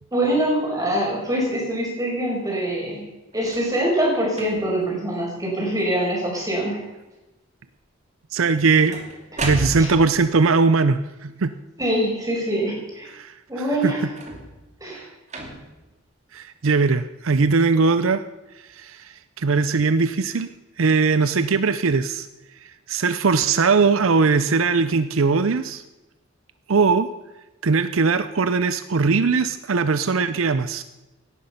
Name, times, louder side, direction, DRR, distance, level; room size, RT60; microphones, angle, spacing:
voice 1, 0.1-3.1 3.3-6.8 9.8-9.9 11.8-13.1 13.5-14.1 14.8-15.1, right 1 dB, 15° right, -2 dB, 5.3 m, -24 dB
sound 1, 3.3-3.8 4.3-4.8 5.4-5.8 6.1-6.7 8.4-10.2 14.0-14.7 15.3-15.9 16.7-16.8, right 2 dB, 35° right, 2.4 m, -34 dB
voice 2, 8.3-9.0 9.4-11.5 13.1-13.3 13.8-14.1 16.3-18.2 18.7-20.5 20.8-22.3 22.6-25.8 26.7-27.1 27.6-30.8, right 4 dB, 70° right, 12 dB, 0.6 m, -20 dB
17.5 x 11.0 x 5.7 m, 1.1 s
head